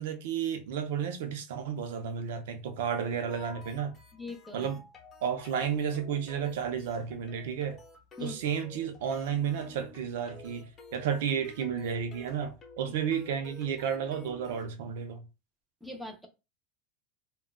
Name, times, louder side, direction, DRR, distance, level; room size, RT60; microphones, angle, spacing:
voice 1, 0.0-3.9 4.5-4.8 5.2-7.8 8.2-15.3, right 7 dB, 80° right, 0.6 m, -32 dB
sound 1, 3.3-14.7, left 2 dB, 25° left, 0.9 m, -52 dB
voice 2, 4.1-4.7 8.2-8.4 15.8-16.3, left 3 dB, 5° right, 0.6 m, -41 dB
3.6 x 2.2 x 2.2 m
supercardioid pair, 135°, 0 cm